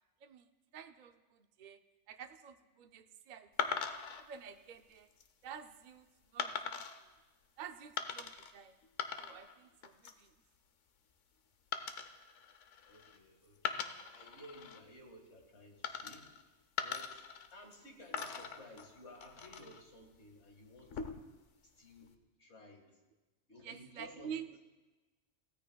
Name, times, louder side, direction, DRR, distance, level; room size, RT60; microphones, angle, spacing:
voice 1, 0.7-1.8 2.1-3.8 4.2-5.1 5.4-6.1 6.3-6.8 7.6-8.8 9.2-10.3 23.6-24.6, right 8 dB, 50° right, 8 dB, 0.6 m, -49 dB
sound 1, 3.6-4.2 4.9-5.3 6.4-7.0 8.0-8.5 8.8-9.6 9.8-10.3 11.7-13.2 13.6-14.8 15.8-16.4 16.8-17.8 18.1-19.8 20.8-21.4, left 7 dB, 80° left, 1.1 m, -41 dB
voice 2, 12.8-16.5 16.8-21.2 21.6-23.0 23.5-24.4, left 1 dB, 65° left, 2 dB, 2.2 m, -56 dB
16.5 x 14.5 x 2.3 m, 1.2 s
omnidirectional pair, 1.2 m